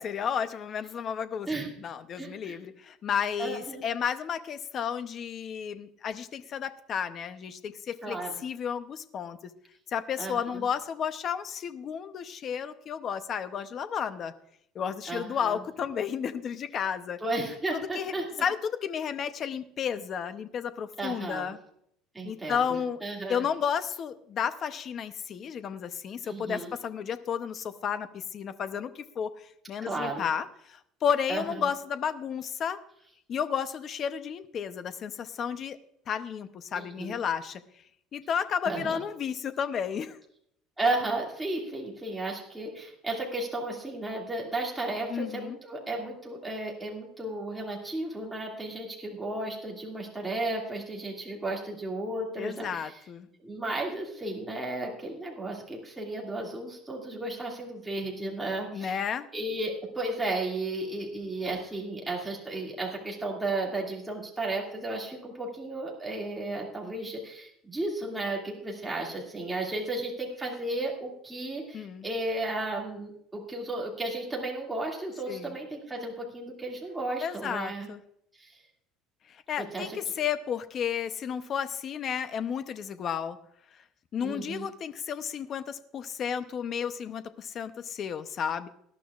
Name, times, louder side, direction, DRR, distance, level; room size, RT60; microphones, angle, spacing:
voice 1, 0.0-8.2 8.4-9.4 9.9-14.3 14.7-17.2 17.7-18.1 18.4-21.6 22.2-23.0 23.3-32.8 33.3-35.8 36.1-37.6 38.1-40.2 45.1-45.6 52.4-53.3 58.7-59.3 71.7-72.1 75.3-75.5 77.2-78.0 79.5-83.4 84.1-88.7, left 7 dB, 30° left, 11 dB, 0.6 m, -32 dB
voice 2, 2.2-2.6 3.4-3.8 8.0-8.4 10.2-10.6 15.1-15.6 17.2-18.2 21.0-21.5 22.1-23.4 26.2-26.8 29.8-30.2 31.3-31.7 36.8-37.2 38.6-39.0 40.8-53.0 53.4-59.0 59.3-77.9 78.4-78.5 79.6-80.0 84.2-84.7, right 2 dB, 5° right, -3 dB, 2.2 m, -34 dB
18.5 x 12.0 x 2.4 m, 0.71 s
cardioid pair, 165°, 0 cm